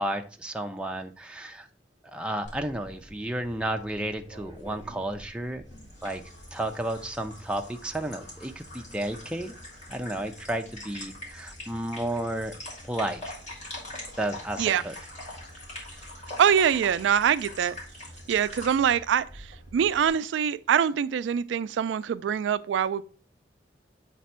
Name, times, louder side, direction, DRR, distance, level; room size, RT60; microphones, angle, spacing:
voice 1, 0.0-1.7 2.0-5.6 6.0-6.2 6.5-9.5 9.9-12.5 12.8-13.4 14.2-14.9, right 1 dB, 5° right, 0.5 m, -32 dB
sound 1, 2.4-20.1, left 1 dB, 40° left, 2.4 m, -44 dB
voice 2, 16.4-17.8 18.3-23.0, right 8 dB, 85° right, 0.3 m, -24 dB
7.4 x 3.4 x 4.2 m
head